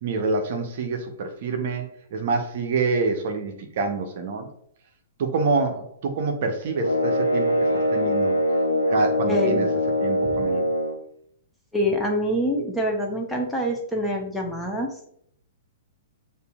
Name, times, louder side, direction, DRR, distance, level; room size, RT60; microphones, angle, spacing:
voice 1, 0.0-4.5 5.2-8.4 8.9-9.7 10.0-10.7, right 4 dB, 50° right, 4 dB, 0.7 m, -27 dB
sound 1, 6.7-11.0, equal, 85° left, 0.8 m, -23 dB
voice 2, 9.3-9.7 10.2-10.4 11.7-15.1, equal, 5° left, 0 dB, 0.8 m, -26 dB
6.6 x 2.6 x 2.3 m, 0.67 s
figure-of-eight pair, 110°, 0 cm